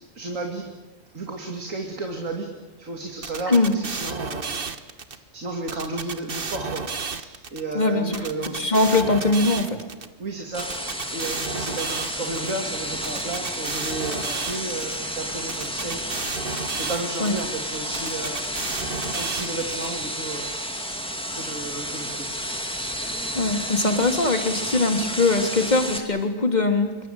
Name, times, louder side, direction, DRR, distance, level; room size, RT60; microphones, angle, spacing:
voice 1, 0.1-0.7 1.1-2.5 2.8-4.6 5.1-8.6 10.2-16.1 16.7-18.4 19.1-20.5 21.3-22.3, right 2 dB, 90° right, 3 dB, 3.0 m, -33 dB
sound 1, 3.2-5.2 5.7-7.6 8.1-10.1 10.6-12.5 13.0-15.0 15.5-17.4 17.9-19.9, right 5 dB, 45° right, 1.5 m, -32 dB
voice 2, 7.7-8.2 8.5-9.8 17.2-17.3 23.3-26.9, left 2 dB, 35° left, 5 dB, 3.3 m, -21 dB
sound 2, 10.5-26.0, equal, 5° left, 2.6 m, -31 dB
26.5 x 23.5 x 9.0 m, 1.1 s
omnidirectional pair, 1.3 m